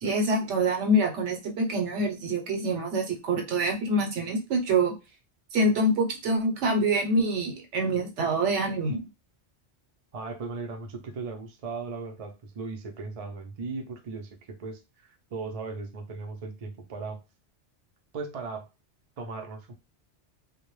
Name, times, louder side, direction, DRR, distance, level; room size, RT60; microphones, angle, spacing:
voice 1, 0.0-4.9 5.5-9.0, right 1 dB, 80° right, 3 dB, 1.0 m, -25 dB
voice 2, 10.1-17.2 18.1-18.7 19.2-19.7, right 4 dB, 50° right, 3 dB, 0.4 m, -37 dB
2.2 x 2.0 x 3.0 m, 0.26 s
omnidirectional pair, 1.2 m